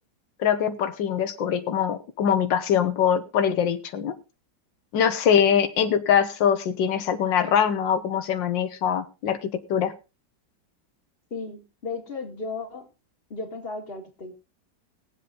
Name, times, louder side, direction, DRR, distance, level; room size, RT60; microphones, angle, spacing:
voice 1, 0.4-4.1 4.9-9.9, left 8 dB, 90° left, 9 dB, 1.8 m, -23 dB
voice 2, 11.3-12.9 13.3-14.4, left 3 dB, 30° left, 3 dB, 2.4 m, -35 dB
20.0 x 7.8 x 3.8 m, 0.29 s
omnidirectional pair, 1.9 m